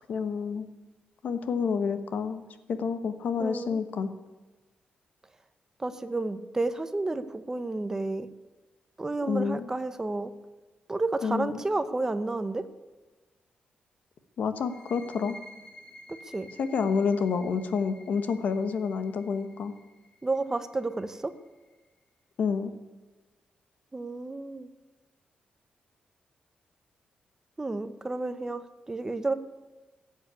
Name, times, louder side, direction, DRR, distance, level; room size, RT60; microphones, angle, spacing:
voice 1, 0.1-0.7 1.2-2.4 2.7-4.1 9.2-9.7 11.2-11.6 14.4-15.4 16.6-19.7 22.4-22.7, left 5 dB, 70° left, 10 dB, 1.2 m, -29 dB
voice 2, 3.4-3.8 5.8-8.3 9.0-10.3 10.9-12.7 16.2-16.5 20.2-21.3 23.9-24.7 27.6-29.3, right 2 dB, 20° right, 11 dB, 0.8 m, -31 dB
sound 1, 14.6-22.0, left 1 dB, 30° left, 2.2 m, -52 dB
15.0 x 8.2 x 8.3 m, 1.2 s
wide cardioid pair, 130°, 3 cm